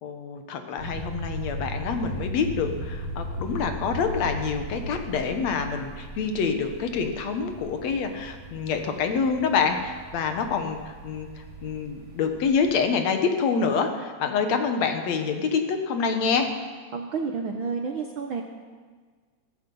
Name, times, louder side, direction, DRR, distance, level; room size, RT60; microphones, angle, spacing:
voice 1, 0.0-11.3 11.6-16.5, left 5 dB, 70° left, 6 dB, 2.4 m, -26 dB
sound 1, 0.8-12.8, right 1 dB, 40° right, 2.1 m, -37 dB
voice 2, 16.9-18.4, right 5 dB, 65° right, 3 dB, 1.4 m, -30 dB
17.0 x 14.5 x 5.5 m, 1.5 s
omnidirectional pair, 3.3 m